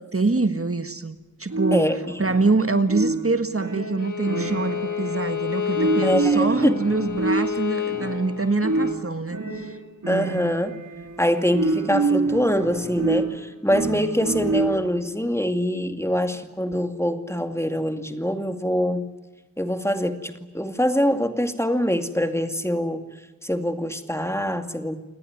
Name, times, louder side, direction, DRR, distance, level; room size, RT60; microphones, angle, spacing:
voice 1, 0.1-1.9 2.2-9.8, right 3 dB, 50° right, 9 dB, 1.5 m, -25 dB
sound 1, 1.5-15.1, right 3 dB, 75° right, 2.6 m, -27 dB
voice 2, 1.7-2.2 6.0-6.9 10.1-10.8 11.2-19.1 19.6-23.0 23.4-25.0, equal, 10° left, 7 dB, 2.3 m, -24 dB
Bowed string instrument, 4.0-9.0, left 9 dB, 85° left, 1.5 m, -29 dB
28.5 x 19.5 x 9.5 m, 1.1 s
wide cardioid pair, 55°, 30 cm